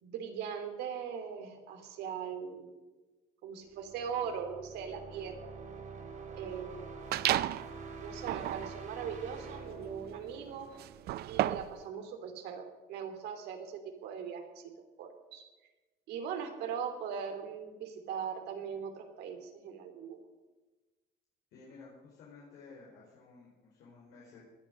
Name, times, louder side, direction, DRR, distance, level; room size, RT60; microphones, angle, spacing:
voice 1, 0.0-2.8 3.4-5.5 6.4-7.0 8.0-10.7 11.3-14.7 15.0-15.4 16.1-20.2, right 7 dB, 85° right, 5 dB, 3.0 m, -40 dB
sound 1, 3.7-11.4, right 4 dB, 50° right, 3.9 m, -47 dB
sound 2, 7.1-7.7 8.2-11.8, right 14 dB, 70° right, 0.6 m, -33 dB
voice 2, 21.5-24.4, left 4 dB, 85° left, -5 dB, 4.9 m, -54 dB
19.5 x 11.5 x 6.6 m, 1.2 s
cardioid pair, 110°, 17 cm